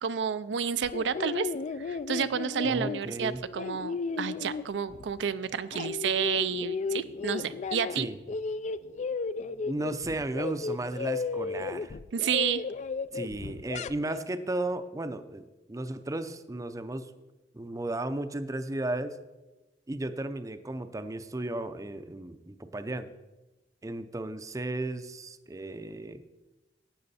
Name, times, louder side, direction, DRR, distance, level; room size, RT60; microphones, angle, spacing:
voice 1, 0.0-1.5 1.8-8.1 12.1-12.6, right 7 dB, 75° right, 13 dB, 0.4 m, -30 dB
sound 1, 0.8-5.2 5.5-8.0 8.3-14.2, left 4 dB, 40° left, 0.3 m, -34 dB
voice 2, 2.6-3.4 8.0-8.2 9.6-12.0 13.1-17.1 17.5-19.2 19.9-23.1 23.8-26.4, right 2 dB, 20° right, 11 dB, 0.5 m, -34 dB
12.0 x 8.7 x 4.2 m, 1.1 s
head